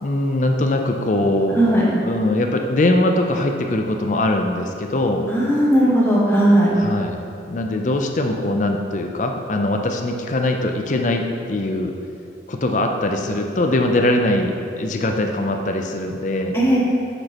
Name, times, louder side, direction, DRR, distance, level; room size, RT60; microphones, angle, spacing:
voice 1, 0.0-1.6 2.0-5.3 6.7-11.9 12.5-16.5, left 1 dB, 40° left, 4 dB, 0.5 m, -21 dB
voice 2, 1.5-1.9 5.3-6.8 16.5-16.8, right 1 dB, 10° left, -7 dB, 1.2 m, -16 dB
7.7 x 6.1 x 2.9 m, 2.5 s
head